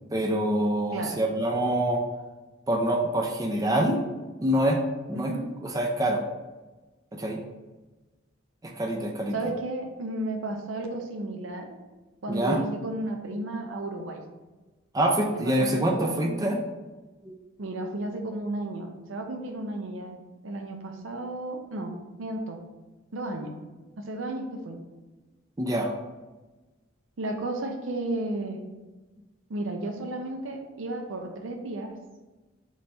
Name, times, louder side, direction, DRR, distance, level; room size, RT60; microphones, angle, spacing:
voice 1, 0.1-2.0 2.7-4.0 4.4-4.8 5.1-5.3 5.6-6.2 7.1-7.4 8.6-9.4 12.3-12.7 14.9-16.6 17.2-17.3 25.6-25.9, right 1 dB, 20° right, 2 dB, 0.4 m, -25 dB
voice 2, 5.1-5.5 9.3-11.8 12.2-14.2 15.3-16.5 17.6-21.9 22.2-22.6 23.1-23.5 24.0-24.8 27.2-28.6 29.5-32.0, right 2 dB, 80° right, 4 dB, 0.6 m, -33 dB
4.1 x 3.2 x 3.3 m, 1.2 s
head